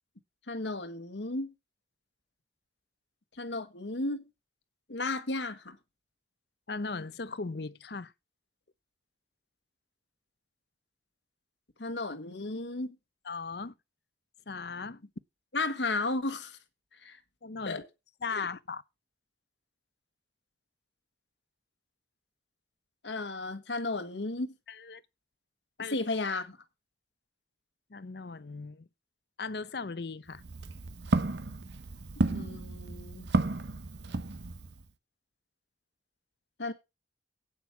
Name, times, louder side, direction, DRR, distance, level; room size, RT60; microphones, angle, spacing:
voice 1, 0.5-1.5 3.4-4.3 4.9-5.8 11.8-12.9 15.5-16.6 17.0-17.2 17.6-17.8 18.3-18.5 23.0-24.5 25.9-26.6 32.3-33.3 36.6-36.7, left 2 dB, 80° left, 1.4 m, -34 dB
voice 2, 6.7-8.1 13.2-13.7 14.5-15.0 17.4-17.8 18.2-18.8 24.7-25.0 25.8-25.9 27.9-28.9 29.4-30.4, left 4 dB, 60° left, 0.7 m, -38 dB
Walk footsteps, 30.3-34.8, right 2 dB, 70° right, 0.8 m, -32 dB
8.8 x 8.0 x 5.9 m
head